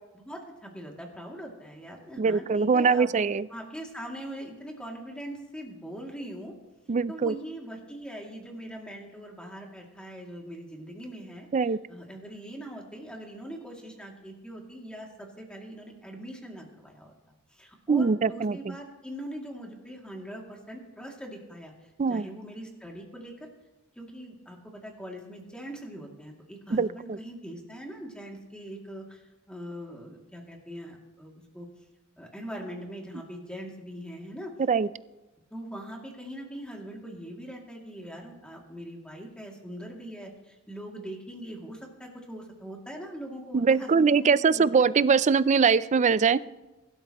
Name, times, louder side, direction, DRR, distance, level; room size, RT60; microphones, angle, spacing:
voice 1, 0.1-3.2 3.5-6.5 7.1-17.1 17.5-23.5 24.0-31.7 32.2-34.5 35.5-44.9, equal, 5° left, -1 dB, 2.4 m, -42 dB
voice 2, 2.2-3.4 6.9-7.3 11.5-11.8 17.9-18.6 22.0-22.3 26.7-27.2 34.7-34.9 43.5-46.4, right 5 dB, 35° right, 17 dB, 0.4 m, -22 dB
23.5 x 12.5 x 3.0 m, 1.1 s
head